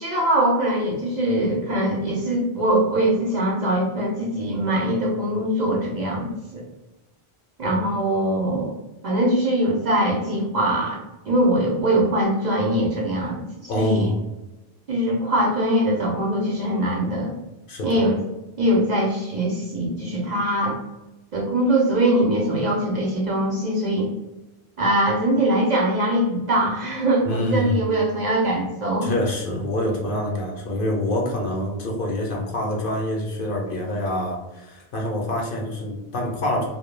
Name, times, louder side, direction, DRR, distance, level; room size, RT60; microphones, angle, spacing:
voice 1, 0.0-6.6 7.6-8.7 9.0-11.0 11.2-14.1 14.9-17.4 17.8-18.2 18.6-20.8 21.3-24.1 24.8-29.1, right 1 dB, 50° right, -3 dB, 0.6 m, -22 dB
voice 2, 13.7-14.2 17.7-18.0 27.3-27.9 29.0-36.7, left 1 dB, 65° left, 0 dB, 0.7 m, -26 dB
2.1 x 2.1 x 3.1 m, 1.0 s
omnidirectional pair, 1.1 m